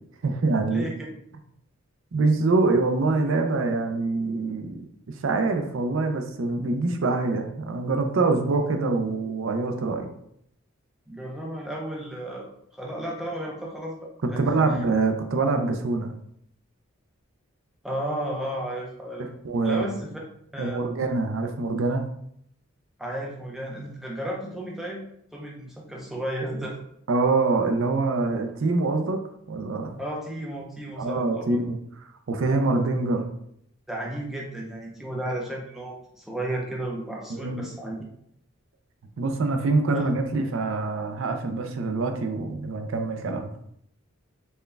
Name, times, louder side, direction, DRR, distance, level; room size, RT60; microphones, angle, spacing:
voice 1, 0.2-0.9 2.1-4.8 5.2-10.1 14.4-16.1 19.2-20.0 20.6-22.0 27.1-29.2 29.5-30.0 31.0-31.8 32.3-33.3 37.3-37.6 39.2-43.5, right 3 dB, 70° right, 5 dB, 0.4 m, -25 dB
voice 2, 11.1-14.4 17.8-19.3 19.6-20.1 20.5-20.8 23.0-25.0 25.3-26.8 30.0-31.6 33.9-38.0 39.9-40.1, right 1 dB, ahead, -3 dB, 0.6 m, -33 dB
4.3 x 2.3 x 3.2 m, 0.71 s
head